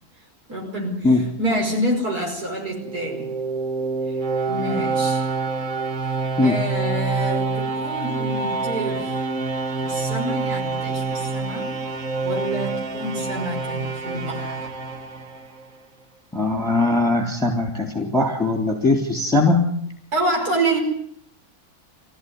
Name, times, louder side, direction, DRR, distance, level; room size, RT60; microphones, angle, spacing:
voice 1, 0.5-3.3 4.1-4.2 4.4-5.2 6.4-9.2 9.8-11.7 12.2-14.6 20.1-20.8, right 1 dB, 80° right, 1 dB, 6.0 m, -27 dB
sound 1, 2.7-15.8, right 4 dB, 60° right, 2.0 m, -27 dB
voice 2, 16.3-19.6, left 2 dB, ahead, 3 dB, 3.5 m, -20 dB
25.5 x 17.0 x 9.7 m, 0.68 s
omnidirectional pair, 1.6 m